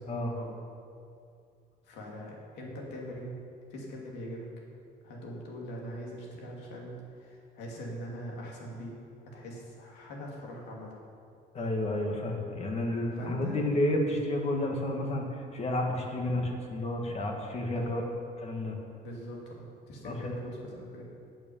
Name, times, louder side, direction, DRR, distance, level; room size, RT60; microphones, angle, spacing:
voice 1, 1.8-3.3 3.7-4.5 5.0-8.9 9.3-10.9 13.1-13.6 17.7-18.0 19.0-21.0, equal, 80° left, -2 dB, 2.8 m, -42 dB
voice 2, 11.5-18.0 18.4-18.8 20.0-20.3, left 1 dB, 40° left, 1 dB, 1.9 m, -31 dB
9.0 x 8.5 x 7.3 m, 2.5 s
cardioid pair, 110°, 17 cm